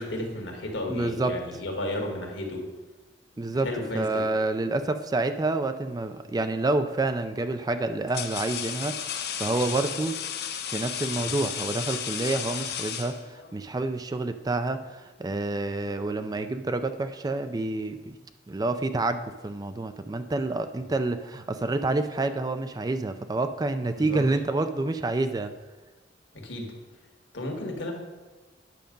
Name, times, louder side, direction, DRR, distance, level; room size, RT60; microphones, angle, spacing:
voice 1, 0.0-2.6 3.3-4.2 11.2-11.3 23.9-24.2 26.3-26.7 27.3-27.9, left 1 dB, 75° left, 1 dB, 1.8 m, -33 dB
voice 2, 0.9-1.4 3.4-3.7 3.9-10.2 10.7-18.2 18.5-25.5, right 2 dB, 20° right, 9 dB, 0.4 m, -28 dB
sound 1, 6.5-6.8 7.6-13.6, left 8 dB, 60° left, 0.7 m, -34 dB
9.3 x 6.4 x 5.2 m, 1.2 s
head